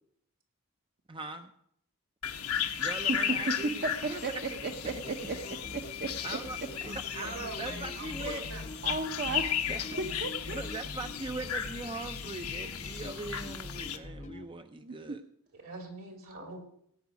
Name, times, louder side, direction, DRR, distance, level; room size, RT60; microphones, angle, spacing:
voice 1, 1.1-1.5 2.8-4.2 5.1-5.2 6.2-6.6 6.8-8.5 9.7-9.8 10.5-15.2, right 3 dB, 25° right, 8 dB, 0.5 m, -40 dB
sound 1, 2.2-14.0, left 8 dB, 85° left, 1.2 m, -35 dB
voice 2, 3.1-6.4 8.3-8.5 8.8-9.5 10.0-10.6 14.8-15.2, right 3 dB, 50° right, 5 dB, 0.9 m, -35 dB
sound 2, 4.8-14.5, left 2 dB, 35° left, 0.7 m, -45 dB
voice 3, 7.1-8.6 15.6-16.6, right 3 dB, 70° right, 3 dB, 3.2 m, -43 dB
17.5 x 9.2 x 5.2 m, 0.70 s
head